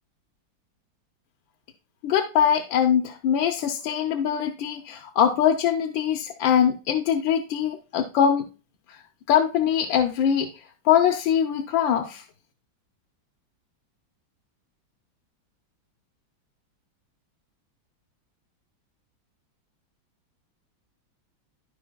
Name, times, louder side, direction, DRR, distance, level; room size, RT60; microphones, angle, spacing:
voice 1, 2.0-8.4 9.3-10.5 10.8-12.2, left 8 dB, 80° left, 3 dB, 1.6 m, -22 dB
13.5 x 5.4 x 2.3 m, 0.33 s
omnidirectional pair, 2.1 m